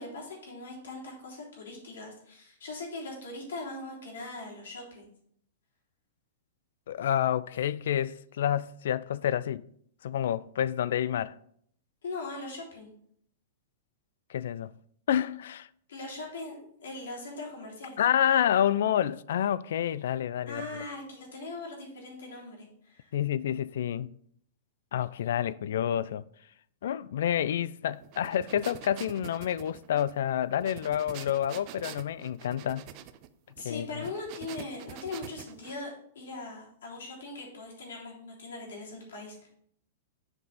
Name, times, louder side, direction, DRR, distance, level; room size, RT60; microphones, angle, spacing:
voice 1, 0.0-5.1 12.0-12.9 15.9-18.0 20.5-23.1 33.5-39.5, left 3 dB, 90° left, 3.3 m, -40 dB
voice 2, 6.9-9.7 10.0-11.3 14.3-14.7 15.1-15.7 18.0-20.6 23.1-24.1 24.9-26.2 26.8-32.8 33.6-34.0, left 10 dB, 70° left, 0.3 m, -28 dB
sound 1, 28.0-35.8, right 12 dB, 35° right, 0.5 m, -46 dB
7.7 x 5.3 x 4.1 m
supercardioid pair, 155°, 0 cm